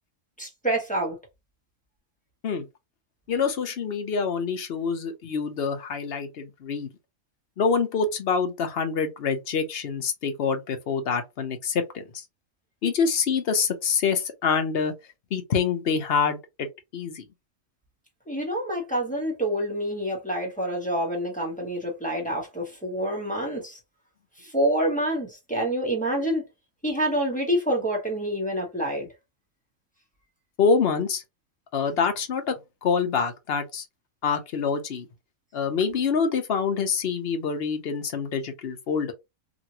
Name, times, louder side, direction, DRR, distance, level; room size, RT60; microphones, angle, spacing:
voice 1, 0.4-1.2 18.3-23.8 24.4-26.4 26.8-29.1, right 1 dB, 5° left, 1.0 m, -27 dB
voice 2, 3.3-6.9 7.6-12.2 12.8-14.9 15.3-16.7 16.9-17.2 30.6-31.2 31.7-33.8 34.2-35.1 35.5-39.1, left 5 dB, 55° left, 0.8 m, -26 dB
3.0 x 2.6 x 2.8 m
omnidirectional pair, 1.4 m